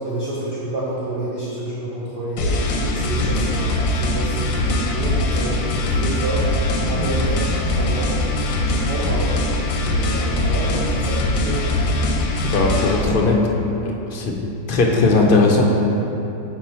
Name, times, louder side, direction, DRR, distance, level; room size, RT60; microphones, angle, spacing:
voice 1, 0.0-6.5 6.9-7.4 7.8-8.1 8.6-9.3 9.8-11.7, right 2 dB, 45° right, -9 dB, 0.9 m, -29 dB
sound 1, 2.4-13.0, left 1 dB, 70° left, 1.0 m, -21 dB
voice 2, 12.4-13.5 13.8-14.4 14.7-15.6, left 3 dB, 50° left, 0 dB, 0.6 m, -18 dB
5.9 x 4.6 x 4.3 m, 2.9 s
omnidirectional pair, 1.5 m